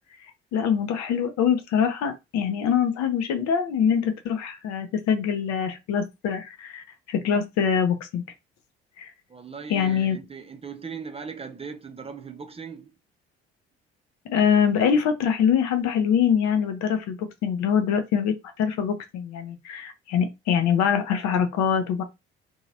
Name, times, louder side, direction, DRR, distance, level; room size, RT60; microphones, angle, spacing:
voice 1, 0.5-8.2 9.0-9.1 9.7-10.2 14.3-22.0, left 7 dB, 60° left, 0.6 m, -24 dB
voice 2, 9.3-12.9, right 6 dB, 20° right, 0.5 m, -38 dB
2.8 x 2.3 x 2.8 m
figure-of-eight pair, 45°, 31 cm